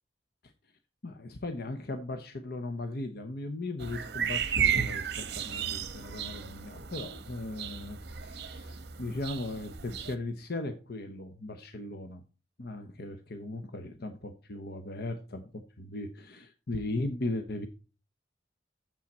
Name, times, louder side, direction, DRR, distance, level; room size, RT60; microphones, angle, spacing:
voice 1, 1.0-12.2 12.6-17.7, left 2 dB, 60° left, 8 dB, 0.8 m, -38 dB
sound 1, 3.8-10.1, right 8 dB, 60° right, 0.9 m, -34 dB
8.6 x 7.2 x 4.3 m, 0.33 s
head